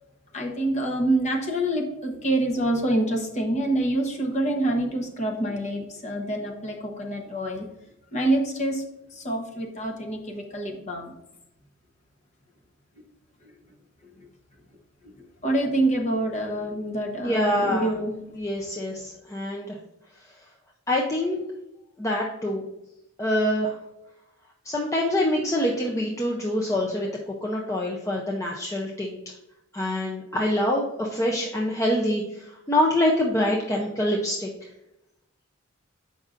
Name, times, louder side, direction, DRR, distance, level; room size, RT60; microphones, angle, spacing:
voice 1, 0.3-7.7 8.1-8.8 9.1-11.1 14.2-14.3 15.0-15.2 15.4-18.1, right 1 dB, 35° left, 1 dB, 0.9 m, -26 dB
voice 2, 17.2-17.9 18.4-19.8 20.9-21.4 22.0-22.6 23.2-23.7 24.7-27.1 27.4-29.2 29.7-34.5, left 1 dB, 15° left, -2 dB, 0.5 m, -25 dB
7.5 x 5.3 x 2.5 m, 0.89 s
head